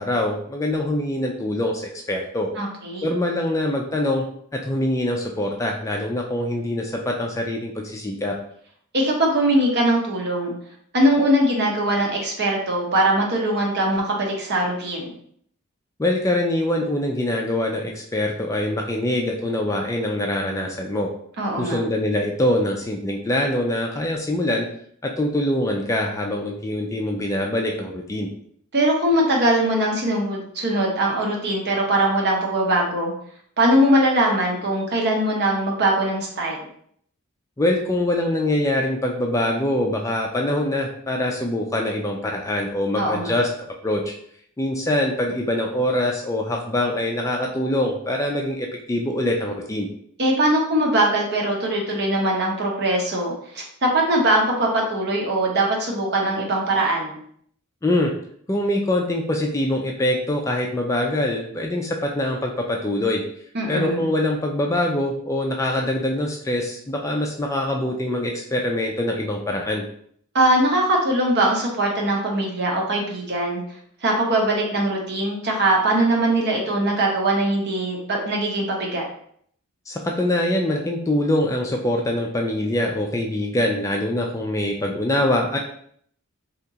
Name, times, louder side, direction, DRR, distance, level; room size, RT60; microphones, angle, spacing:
voice 1, 0.0-1.8 2.1-2.5 3.0-4.3 4.5-8.4 16.0-21.1 21.6-24.7 25.0-28.3 37.6-43.5 43.8-44.0 44.6-49.9 57.8-58.1 58.5-63.2 63.7-69.8 79.9-85.6, left 1 dB, 15° left, 1 dB, 0.4 m, -24 dB
voice 2, 2.6-3.1 8.9-10.5 10.9-15.1 21.4-21.8 28.7-33.1 33.6-36.6 43.0-43.4 50.2-57.2 63.5-64.1 70.3-73.6 74.0-79.0, right 1 dB, 50° right, -1 dB, 0.9 m, -21 dB
3.5 x 2.9 x 2.8 m, 0.63 s
head